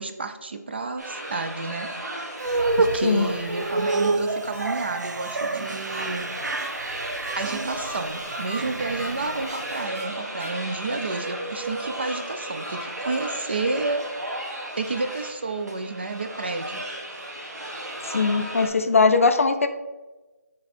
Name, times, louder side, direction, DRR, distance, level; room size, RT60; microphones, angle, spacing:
voice 1, 0.0-1.9 2.8-6.3 7.4-14.0 14.8-16.9, right 3 dB, 35° right, 7 dB, 0.5 m, -30 dB
sound 1, 1.0-18.7, right 1 dB, 70° right, 1.9 m, -35 dB
sound 2, 2.4-9.8, right 2 dB, 85° right, 0.5 m, -28 dB
sound 3, 4.5-4.6 5.2-5.3 5.9-6.0 6.6-6.7 7.2-7.3 7.9-8.0 8.5-8.6 9.0-9.1 9.5-9.6 10.0-10.1 10.4-10.5, right 2 dB, 55° right, 1.9 m, -37 dB
voice 2, 18.0-19.7, left 4 dB, 50° left, 9 dB, 0.5 m, -20 dB
7.4 x 3.5 x 4.2 m, 1.2 s
figure-of-eight pair, 170°, 9 cm